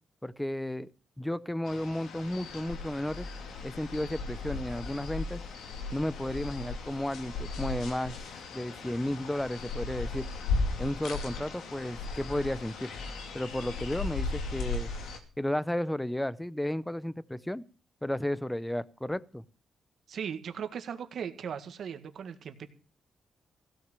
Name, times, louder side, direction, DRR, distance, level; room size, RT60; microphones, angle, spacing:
voice 1, 0.2-0.9 1.2-3.3 3.6-5.4 5.9-8.1 8.5-10.3 10.8-12.9 13.3-14.9 15.4-17.6 18.0-19.4, left 1 dB, 5° left, 0.7 m, -33 dB
sound 1, 1.7-15.2, left 3 dB, 90° left, 2.5 m, -36 dB
voice 2, 20.1-22.7, right 7 dB, 70° right, 1.8 m, -38 dB
16.0 x 6.5 x 8.9 m
cardioid pair, 95°, 0 cm